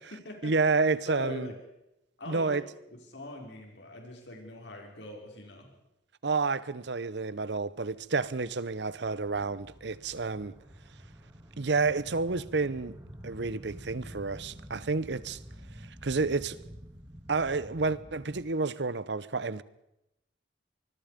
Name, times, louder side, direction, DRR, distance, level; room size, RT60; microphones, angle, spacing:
voice 1, 0.4-1.5 2.3-2.6 6.2-10.5 11.6-13.0 13.2-15.4 15.8-16.6 17.3-19.6, right 4 dB, 70° right, 0.9 m, -30 dB
voice 2, 1.1-1.6 2.2-2.6 2.9-5.7, left 1 dB, 70° left, 5.7 m, -42 dB
sound 1, 7.9-18.4, equal, 15° right, 2.7 m, -49 dB
25.0 x 21.5 x 5.2 m
head